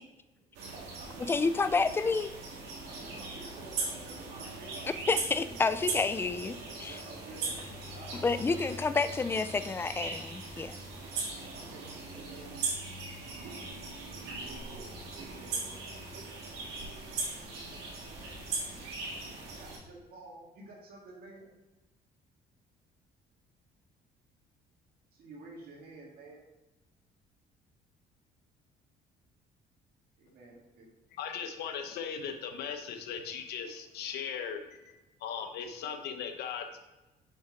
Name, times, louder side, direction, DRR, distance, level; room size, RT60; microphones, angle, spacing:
voice 1, 0.4-2.1 2.9-5.0 5.4-6.3 6.5-8.9 11.5-12.6 14.1-15.8 19.6-21.5 25.1-26.5 30.2-30.9, right 3 dB, 65° right, -2 dB, 1.8 m, -51 dB
sound 1, 0.5-19.8, right 3 dB, 85° right, 1.7 m, -39 dB
voice 2, 1.3-2.3 5.1-6.5 6.8-7.0 8.2-10.8, left 4 dB, 15° left, 12 dB, 0.3 m, -29 dB
voice 3, 31.2-34.6 35.2-36.8, left 7 dB, 75° left, 6 dB, 0.8 m, -38 dB
5.8 x 5.6 x 3.6 m, 1.1 s
cardioid pair, 110°, 17 cm